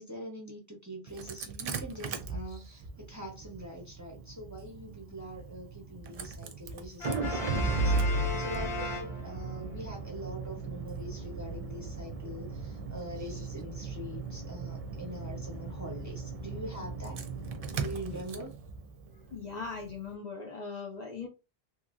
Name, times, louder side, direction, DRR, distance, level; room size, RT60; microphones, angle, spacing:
voice 1, 0.0-17.2 17.8-18.6, equal, 20° right, 0.7 m, -43 dB
Engine starting, 1.1-20.0, right 3 dB, 55° right, 0.4 m, -36 dB
Brass instrument, 7.0-9.7, left 3 dB, 85° left, 0.9 m, -37 dB
voice 2, 19.3-21.3, left 4 dB, 50° left, 0.5 m, -39 dB
3.0 x 2.6 x 2.4 m
omnidirectional pair, 1.1 m